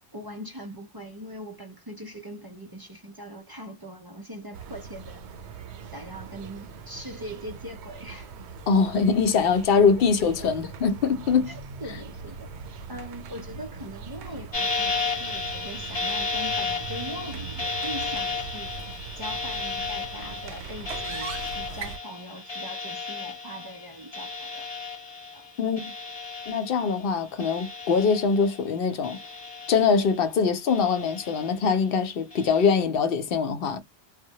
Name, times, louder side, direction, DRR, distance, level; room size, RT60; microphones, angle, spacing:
voice 1, 0.1-5.3 5.9-8.3 10.6-10.7 11.5-12.5 12.9-18.7 19.2-24.7 25.3-25.5, equal, 40° right, 0.3 m, -41 dB
sound 1, 4.5-22.0, right 5 dB, 85° right, 0.9 m, -41 dB
voice 2, 8.7-11.5 25.6-25.8 26.5-29.2 29.7-33.8, left 5 dB, 65° left, 0.8 m, -23 dB
sound 2, 14.5-27.1 27.4-28.6 29.0-30.2 30.7-31.7 32.3-32.8, left 4 dB, 30° left, 0.6 m, -33 dB
2.1 x 2.1 x 2.7 m
omnidirectional pair, 1.1 m